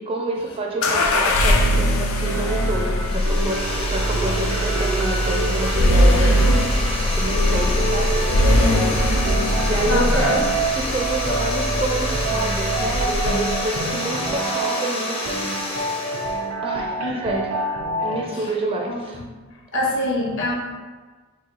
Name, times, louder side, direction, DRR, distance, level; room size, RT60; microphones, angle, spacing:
voice 1, 0.0-6.4 7.0-8.5 9.6-10.5 10.7-15.4 16.6-17.0 17.2-17.4 18.0-19.2, right 2 dB, 25° right, 0 dB, 0.4 m, -28 dB
sound 1, 0.8-13.7, equal, 75° left, 0.4 m, -21 dB
sound 2, 2.2-18.2, right 2 dB, 85° right, 0.5 m, -28 dB
sound 3, 3.0-16.4, left 1 dB, 25° left, 0.5 m, -29 dB
voice 2, 6.2-6.7 9.5-10.4 17.0-17.1 18.3-18.5 18.9-19.2 19.7-20.6, left 1 dB, 60° left, -3 dB, 0.8 m, -26 dB
3.2 x 2.4 x 3.8 m, 1.4 s
head